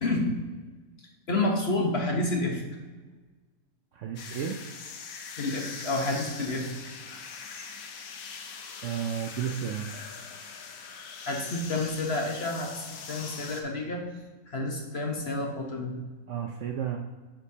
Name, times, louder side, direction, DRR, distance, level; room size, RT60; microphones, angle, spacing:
voice 1, 1.3-2.6 5.4-6.9 11.2-14.0 14.5-15.9, left 2 dB, 45° left, 0 dB, 1.3 m, -29 dB
voice 2, 3.9-4.6 8.8-9.9 16.3-17.0, right 8 dB, 65° right, 2 dB, 0.8 m, -32 dB
sound 1, 4.2-13.6, left 5 dB, 65° left, 1.2 m, -42 dB
9.7 x 6.2 x 2.8 m, 1.3 s
omnidirectional pair, 1.6 m